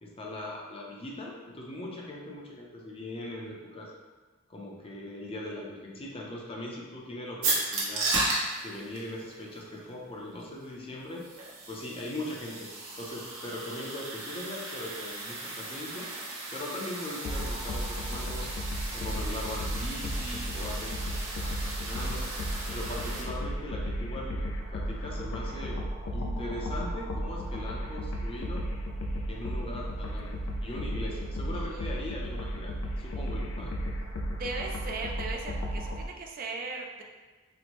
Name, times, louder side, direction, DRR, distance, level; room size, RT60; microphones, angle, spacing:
voice 1, 0.0-3.9 4.5-8.1 8.6-11.2 11.7-12.7 13.0-16.1 16.5-18.5 18.9-22.2 22.7-24.4 24.7-25.8 26.1-28.6 29.3-30.3 30.6-34.0, left 1 dB, 25° left, -2 dB, 0.5 m, -40 dB
sound 1, 7.4-23.2, right 2 dB, 85° right, 1.0 m, -36 dB
sound 2, 17.2-36.1, equal, 85° left, 0.4 m, -34 dB
voice 2, 31.5-32.0 34.3-37.0, right 3 dB, 45° right, 1 dB, 0.4 m, -38 dB
4.3 x 2.0 x 2.9 m, 1.3 s
head